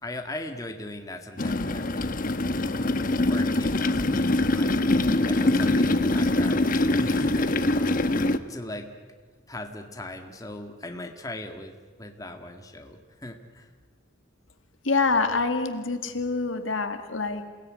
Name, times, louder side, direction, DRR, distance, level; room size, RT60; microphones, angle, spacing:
voice 1, 0.0-2.1 3.2-4.8 5.3-8.0 8.5-8.9 9.5-13.7, left 1 dB, 20° left, 4 dB, 1.9 m, -39 dB
sound 1, 1.4-8.4, left 2 dB, 45° left, 1.0 m, -23 dB
voice 2, 14.8-17.5, left 4 dB, 80° left, 8 dB, 2.1 m, -26 dB
28.0 x 17.5 x 9.8 m, 1.5 s
head